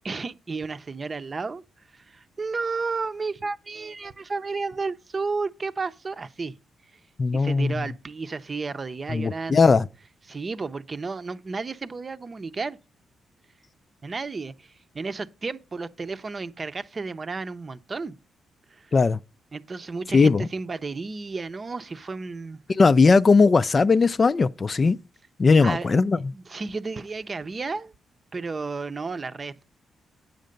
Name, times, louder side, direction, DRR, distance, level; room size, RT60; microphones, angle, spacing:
voice 1, 0.0-6.6 7.3-9.6 10.3-12.8 14.0-18.1 18.7-18.9 19.5-22.6 25.6-25.9 26.3-27.9 28.3-29.6, right 4 dB, 35° right, 0.7 m, -32 dB
voice 2, 7.2-7.7 9.1-9.9 18.9-19.2 20.1-20.5 22.7-25.0 25.4-26.2, left 4 dB, 40° left, 0.4 m, -18 dB
9.1 x 6.6 x 5.2 m
cardioid pair, 75°, 0 cm